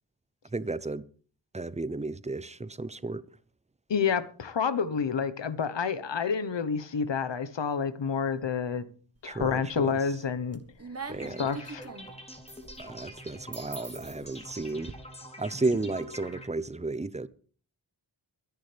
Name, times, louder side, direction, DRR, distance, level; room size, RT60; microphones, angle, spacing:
voice 1, 0.5-1.0 1.5-3.2 9.2-9.9 11.1-11.5 12.8-14.9 15.4-17.3, right 3 dB, 15° right, 0.7 m, -33 dB
voice 2, 3.9-8.9 9.2-10.6 11.4-11.9, left 6 dB, 65° left, 1.2 m, -29 dB
sound 1, 9.2-9.9 10.3-14.9, right 4 dB, 30° right, 1.4 m, -44 dB
sound 2, 11.2-16.5, equal, 15° left, 3.3 m, -45 dB
23.0 x 10.5 x 3.4 m
wide cardioid pair, 105°, 47 cm